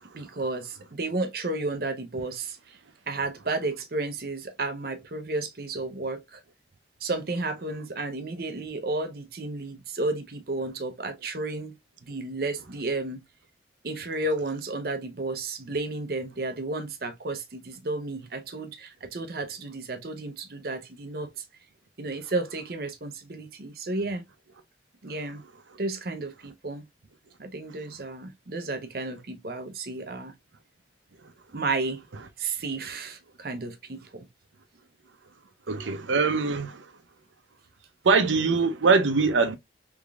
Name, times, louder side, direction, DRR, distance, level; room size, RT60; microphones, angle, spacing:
voice 1, 0.1-2.8 3.1-6.4 7.0-11.8 12.0-13.2 13.8-21.3 22.0-24.2 25.0-25.4 25.8-26.9 27.4-30.3 31.5-32.0 32.4-34.3, right 2 dB, 55° right, 0.7 m, -32 dB
voice 2, 35.7-36.9 38.0-39.6, right 4 dB, 90° right, 0.6 m, -23 dB
3.5 x 3.5 x 2.3 m
head